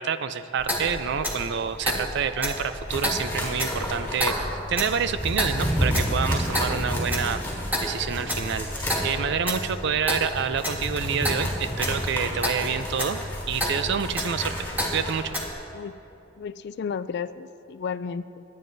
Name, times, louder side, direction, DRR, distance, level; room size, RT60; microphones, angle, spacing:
voice 1, 0.0-13.2 13.5-14.7 14.9-15.3, right 7 dB, 60° right, 12 dB, 0.4 m, -28 dB
Clock, 0.6-15.5, equal, 10° right, 1.5 m, -31 dB
sound 1, 2.9-15.2, equal, 10° left, 3.2 m, -31 dB
voice 2, 16.4-18.4, left 6 dB, 55° left, 14 dB, 0.3 m, -33 dB
24.0 x 9.5 x 2.7 m, 2.8 s
head